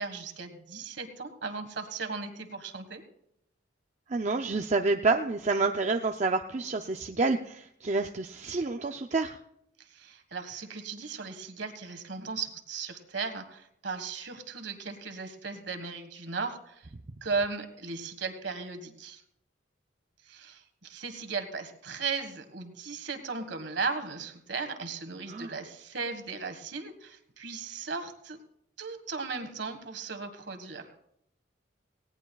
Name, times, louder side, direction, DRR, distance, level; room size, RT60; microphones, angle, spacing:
voice 1, 0.0-3.0 9.8-16.9 17.2-19.2 20.2-28.4 28.8-31.0, right 4 dB, 60° right, 7 dB, 1.6 m, -36 dB
voice 2, 4.1-9.4 25.3-25.5, right 3 dB, 35° right, 4 dB, 0.5 m, -28 dB
19.0 x 17.0 x 2.3 m, 0.76 s
head